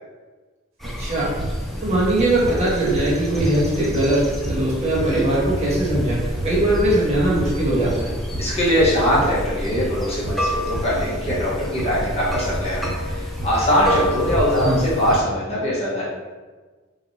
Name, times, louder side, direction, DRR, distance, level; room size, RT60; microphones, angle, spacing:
sound 1, 0.8-15.2, equal, ahead, 0.6 m, -29 dB
voice 1, 0.8-1.3 1.8-8.1 14.6-14.8, right 1 dB, 35° right, -6 dB, 1.2 m, -21 dB
sound 2, 1.4-13.7 13.9-14.6 15.0-15.2, right 1 dB, 90° right, 1.1 m, -31 dB
voice 2, 8.4-13.2 13.4-16.1, equal, 30° left, -7 dB, 1.3 m, -21 dB
6.0 x 3.1 x 2.8 m, 1.4 s
head